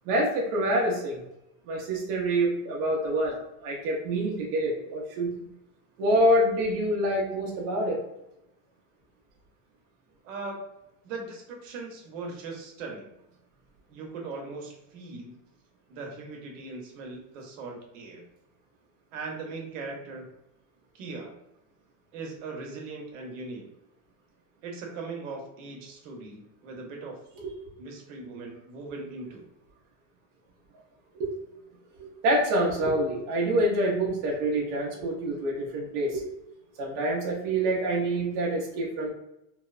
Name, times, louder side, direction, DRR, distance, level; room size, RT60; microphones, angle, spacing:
voice 1, 0.1-1.2 1.7-5.3 6.0-8.0 31.2-31.3 32.0-36.2 36.8-39.1, right 1 dB, 45° right, -2 dB, 0.5 m, -26 dB
voice 2, 10.2-10.6 11.0-13.1 13.9-15.3 15.9-18.2 19.1-20.3 20.9-21.3 22.1-23.7 24.6-27.2 27.8-29.4, right 3 dB, 70° right, 1 dB, 0.8 m, -39 dB
2.7 x 2.0 x 2.3 m, 0.85 s
supercardioid pair, 170°, 39 cm